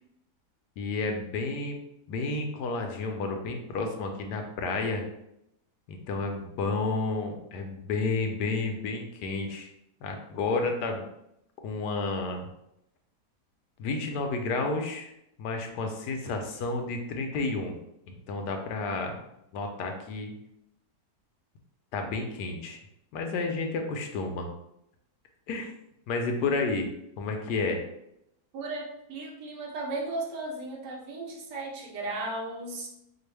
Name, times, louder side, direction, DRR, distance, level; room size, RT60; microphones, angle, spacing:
voice 1, 0.8-1.8 2.1-5.0 5.9-9.7 10.0-11.0 11.6-12.5 13.8-15.1 15.4-17.7 18.1-19.2 19.5-20.3 21.9-22.8 23.1-24.5 25.5-25.7 26.1-26.9 27.2-27.8, left 3 dB, 90° left, 4 dB, 1.2 m, -31 dB
voice 2, 28.5-32.9, right 2 dB, 90° right, 0 dB, 1.4 m, -35 dB
4.3 x 2.4 x 3.3 m, 0.81 s
omnidirectional pair, 1.7 m